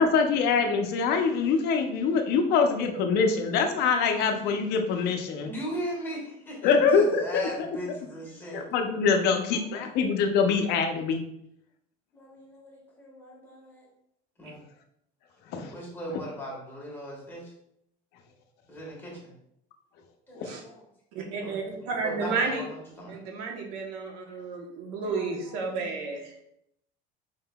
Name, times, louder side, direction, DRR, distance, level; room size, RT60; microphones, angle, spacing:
voice 1, 0.0-5.5 6.6-7.4 8.5-11.2 15.5-15.7 20.4-20.5, left 5 dB, 55° left, 5 dB, 0.5 m, -24 dB
voice 2, 5.4-8.6 9.7-9.9 12.1-13.9 14.4-14.6 15.7-17.5 18.7-19.3 20.3-20.8 21.4-23.2 25.0-25.7, equal, 10° left, -4 dB, 1.3 m, -39 dB
voice 3, 21.1-22.6 23.1-26.3, right 4 dB, 90° right, 1 dB, 1.0 m, -32 dB
4.8 x 3.7 x 2.2 m, 0.76 s
cardioid pair, 160°, 20 cm